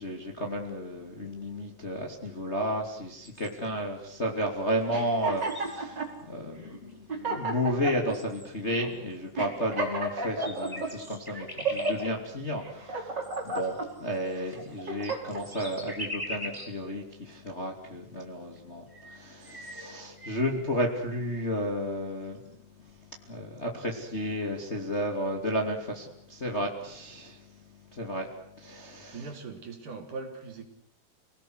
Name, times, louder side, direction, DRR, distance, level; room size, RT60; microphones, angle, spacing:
voice 1, 0.0-22.6 23.2-27.4 27.9-28.3 28.6-29.2, equal, 20° left, 2.5 m, -32 dB
sound 1, 3.2-3.8 4.7-4.8 5.1-6.2 6.9-7.0 7.8-8.8 9.9-10.0 10.2-12.0 13.2-16.8 17.3-17.4 18.6-18.7 18.9-20.6, equal, 5° right, 5.3 m, -42 dB
sound 2, 4.9-6.1 6.7-6.8 7.1-8.2 8.7-8.9 9.4-10.9 11.4-12.1 12.6-13.9 14.4-15.4, right 3 dB, 25° right, 5.2 m, -32 dB
voice 2, 29.1-30.6, right 4 dB, 50° right, 4.5 m, -40 dB
29.5 x 19.5 x 8.0 m
omnidirectional pair, 4.7 m